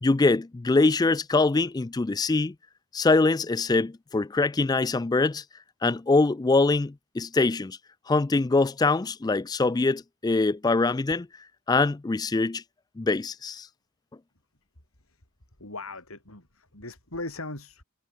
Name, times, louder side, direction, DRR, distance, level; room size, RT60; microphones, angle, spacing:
voice 1, 0.0-2.5 2.9-5.4 5.8-7.8 8.1-11.3 11.7-12.6 13.0-13.7, left 3 dB, 20° left, 0.3 m, -23 dB
voice 2, 15.6-17.8, left 2 dB, 85° left, 7.7 m, -39 dB
head